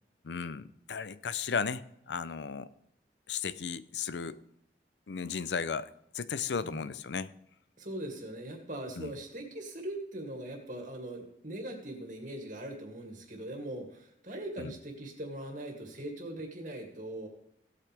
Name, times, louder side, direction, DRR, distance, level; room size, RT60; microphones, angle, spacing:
voice 1, 0.2-2.7 3.3-4.4 5.1-5.9 6.1-7.3 9.0-9.1 14.6-14.7, left 6 dB, 90° left, 16 dB, 0.5 m, -35 dB
voice 2, 7.8-17.3, right 1 dB, 45° right, 2 dB, 2.5 m, -41 dB
17.0 x 8.5 x 3.4 m, 0.78 s
head